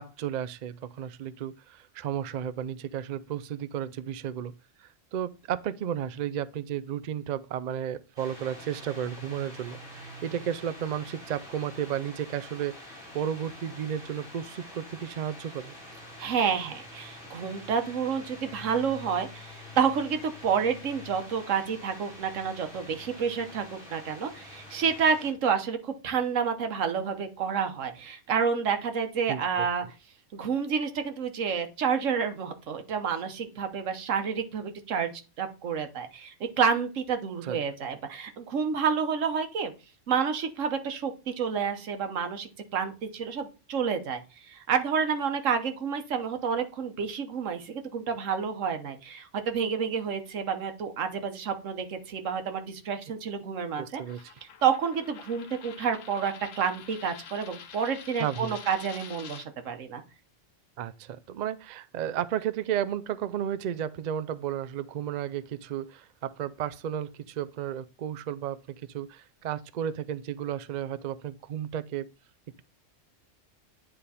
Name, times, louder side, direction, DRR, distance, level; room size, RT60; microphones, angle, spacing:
voice 1, 0.0-4.5 4.8-15.7 29.3-29.7 37.4-37.6 53.8-54.2 58.2-58.6 60.8-72.1, right 10 dB, 70° right, 0.4 m, -33 dB
sound 1, 8.2-25.3, left 1 dB, 50° right, 3.3 m, -46 dB
voice 2, 16.2-29.8 30.3-35.1 35.4-39.7 40.1-44.2 44.5-54.0 54.6-60.0, right 6 dB, 90° right, 1.3 m, -29 dB
Coin (dropping), 54.0-59.5, left 7 dB, 80° left, 1.1 m, -47 dB
9.9 x 3.4 x 4.1 m
omnidirectional pair, 1.3 m